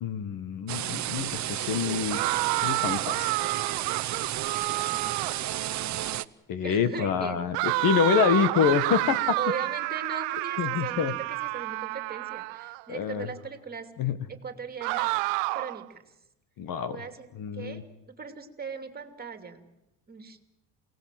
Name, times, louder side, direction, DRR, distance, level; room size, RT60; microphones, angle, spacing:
voice 1, 0.0-2.2 2.6-3.3 6.5-9.4 10.6-11.1 12.9-13.3 14.0-14.2 16.6-17.0 17.3-17.8, left 7 dB, 55° left, 13 dB, 1.7 m, -26 dB
sound 1, 0.7-6.2, right 13 dB, 45° right, 0.8 m, -32 dB
sound 2, 2.1-5.5 7.5-12.8 14.8-15.8, right 23 dB, 85° right, 0.8 m, -29 dB
voice 2, 6.6-7.4 9.4-13.9 14.3-15.1 15.5-16.1 16.9-17.3 17.5-19.7 20.1-20.4, right 5 dB, 20° right, 6 dB, 2.8 m, -39 dB
28.5 x 18.5 x 7.7 m, 0.94 s
cardioid pair, 120°, 41 cm